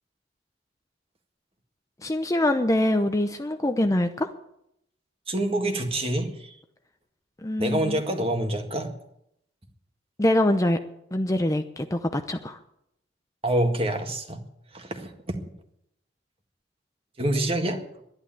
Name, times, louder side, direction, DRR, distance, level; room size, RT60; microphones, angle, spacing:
voice 1, 2.0-4.3 7.4-8.0 10.2-10.8 11.1-12.6, left 1 dB, 20° left, 7 dB, 0.7 m, -24 dB
voice 2, 5.3-6.5 7.6-8.9 13.4-14.4 14.7-15.4 17.2-17.8, right 1 dB, 30° right, 5 dB, 1.8 m, -26 dB
11.5 x 11.0 x 8.9 m, 0.78 s
head